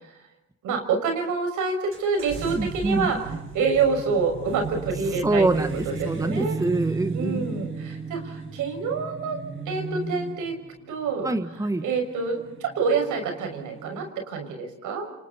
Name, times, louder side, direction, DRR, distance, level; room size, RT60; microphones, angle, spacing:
voice 1, 0.6-3.2 3.5-5.7 6.0-6.6 7.1-9.4 9.7-10.5 10.9-11.3 11.8-15.1, right 5 dB, 85° right, 5 dB, 6.2 m, -27 dB
sound 1, 1.9-14.1, right 4 dB, 45° right, 5.9 m, -35 dB
voice 2, 2.6-3.2 5.2-7.5 11.2-11.8, right 2 dB, 10° right, 9 dB, 1.5 m, -25 dB
30.0 x 27.5 x 4.3 m, 0.91 s
cardioid pair, 90°, 30 cm